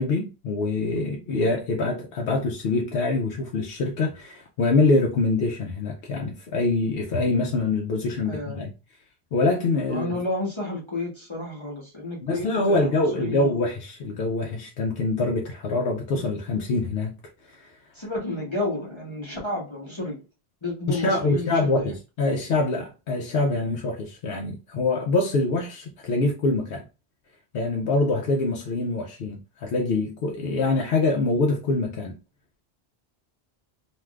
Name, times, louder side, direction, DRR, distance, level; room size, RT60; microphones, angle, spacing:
voice 1, 0.0-8.7 9.3-10.2 12.2-17.1 17.5-17.7 20.9-26.8 27.5-32.1, left 3 dB, 70° left, 0.8 m, -25 dB
voice 2, 8.2-8.6 9.9-13.5 17.9-20.2 20.6-21.9, left 2 dB, 30° left, 0.9 m, -31 dB
3.3 x 2.5 x 2.3 m
omnidirectional pair, 1.1 m